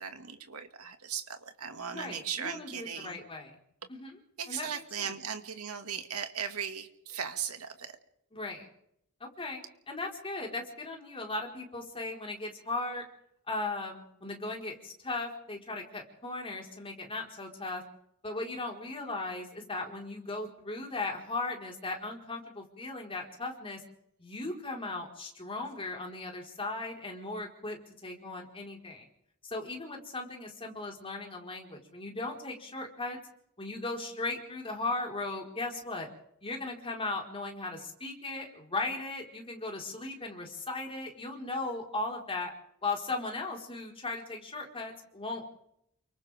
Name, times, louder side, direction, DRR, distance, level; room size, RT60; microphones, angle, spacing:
voice 1, 0.0-3.2 4.4-7.9, right 7 dB, 85° right, 6 dB, 2.2 m, -38 dB
voice 2, 1.9-3.6 3.9-4.2 4.5-5.1 8.3-8.7 9.2-13.0 13.5-17.8 18.2-23.8 24.2-27.8 28.0-29.1 29.4-33.2 33.6-36.1 36.4-42.5 42.8-45.4, left 2 dB, 25° left, 0 dB, 4.7 m, -37 dB
29.5 x 25.0 x 3.6 m, 0.73 s
head